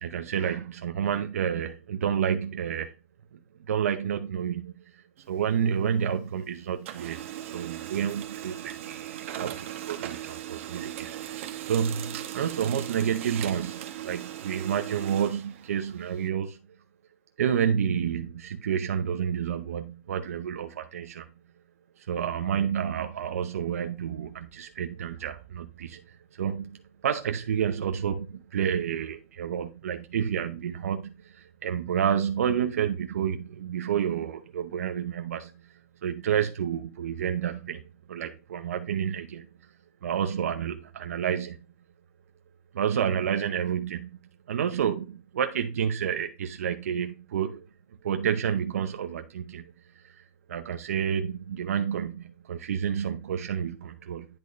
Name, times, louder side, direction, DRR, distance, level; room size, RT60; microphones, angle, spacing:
voice 1, 0.0-2.9 3.7-16.6 17.4-21.3 22.0-37.8 38.1-39.5 40.0-41.6 42.7-44.2 44.5-47.7 48.0-49.6 49.9-54.3, right 8 dB, 85° right, 0.8 m, -30 dB
Printer, 5.2-6.4 6.7-16.3, right 12 dB, 60° right, 1.1 m, -38 dB
10.5 x 4.0 x 3.1 m
hypercardioid pair, 150°, 8 cm